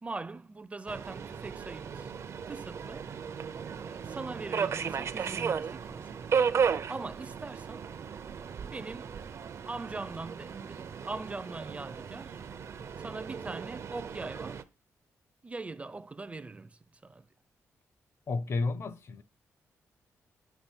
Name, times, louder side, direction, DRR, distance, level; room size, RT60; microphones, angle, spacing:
voice 1, 0.0-2.1 2.5-3.1 3.8-7.9 8.7-9.1 9.7-12.4 13.0-14.6 15.4-17.2, right 3 dB, 25° right, 0.6 m, -41 dB
Subway metro underground, 0.9-14.6, right 6 dB, 60° right, 0.7 m, -35 dB
voice 2, 18.3-19.2, left 3 dB, 55° left, 0.9 m, -31 dB
10.5 x 6.1 x 4.5 m
cardioid pair, 100°, 6 cm